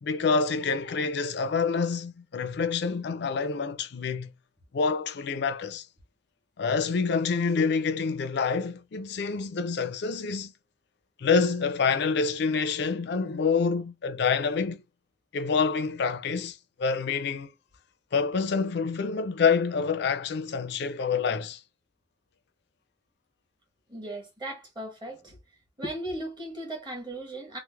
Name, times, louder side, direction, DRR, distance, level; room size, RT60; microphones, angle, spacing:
voice 1, 0.0-4.3 4.7-5.8 6.6-10.5 11.2-14.8 15.3-17.5 18.1-21.6, left 5 dB, 60° left, 0.4 m, -27 dB
voice 2, 23.9-25.4 25.8-27.6, right 1 dB, 25° right, 1.3 m, -37 dB
3.1 x 2.0 x 3.3 m
head